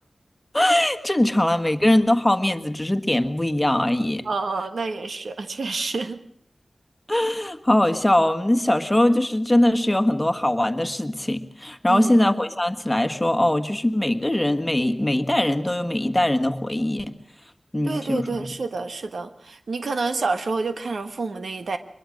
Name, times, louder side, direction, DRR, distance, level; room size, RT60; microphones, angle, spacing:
voice 1, 0.5-4.2 7.1-17.1 17.7-18.4, left 1 dB, 15° left, 9 dB, 1.5 m, -21 dB
voice 2, 4.2-6.2 11.9-12.2 17.8-21.8, right 3 dB, 90° right, 8 dB, 1.3 m, -28 dB
23.5 x 21.5 x 6.5 m, 0.69 s
wide cardioid pair, 70°, 0 cm